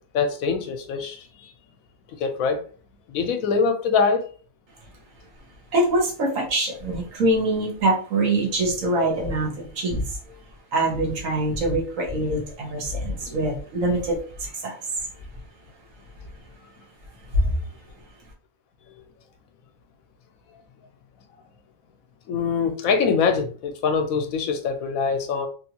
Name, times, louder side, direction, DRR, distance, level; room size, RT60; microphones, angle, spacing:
voice 1, 0.1-1.5 2.2-2.6 3.1-4.2 13.2-13.4 22.3-25.5, left 5 dB, 85° left, 1.1 m, -23 dB
voice 2, 5.7-10.0 10.7-14.8 17.3-17.5, right 1 dB, 70° right, 1.4 m, -24 dB
3.4 x 2.6 x 2.8 m
omnidirectional pair, 1.4 m